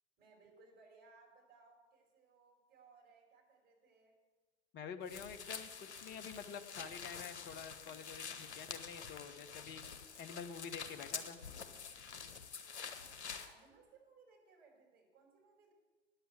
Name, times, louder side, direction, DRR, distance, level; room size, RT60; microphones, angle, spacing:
voice 1, 0.2-4.2 13.0-15.7, right 4 dB, 25° right, -1 dB, 4.8 m, -64 dB
voice 2, 4.7-9.8 10.2-11.4, left 6 dB, 30° left, 8 dB, 1.0 m, -48 dB
sound 1, 5.1-13.5, left 6 dB, 65° left, 1.3 m, -47 dB
9.4 x 7.9 x 9.2 m, 1.3 s
figure-of-eight pair, 95°, 36 cm